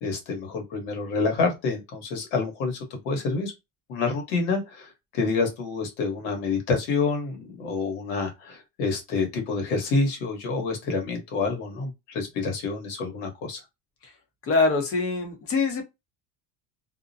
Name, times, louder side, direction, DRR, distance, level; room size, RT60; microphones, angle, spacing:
voice 1, 0.0-3.5 3.9-4.8 5.1-13.6, left 4 dB, 80° left, 1.3 m, -28 dB
voice 2, 14.5-15.8, left 3 dB, 35° left, 0.8 m, -23 dB
2.5 x 2.1 x 2.6 m
cardioid pair, 160°, 39 cm